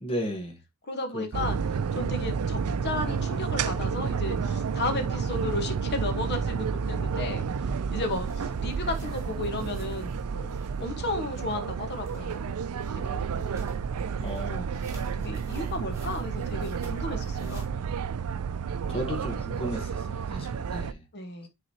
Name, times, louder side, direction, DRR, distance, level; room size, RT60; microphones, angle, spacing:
voice 1, 0.0-0.6 1.1-1.5 14.2-14.7 18.9-21.0, equal, 25° left, 1.2 m, -34 dB
voice 2, 0.9-1.6 1.9-7.4 7.9-12.4 12.9-13.6 14.5-14.6 15.1-17.7 21.1-21.5, left 2 dB, 50° left, 1.2 m, -34 dB
sound 1, 1.3-20.9, right 6 dB, 75° right, 0.4 m, -31 dB
sound 2, 7.9-17.7, right 1 dB, 15° right, 2.2 m, -52 dB
9.3 x 4.0 x 2.8 m
head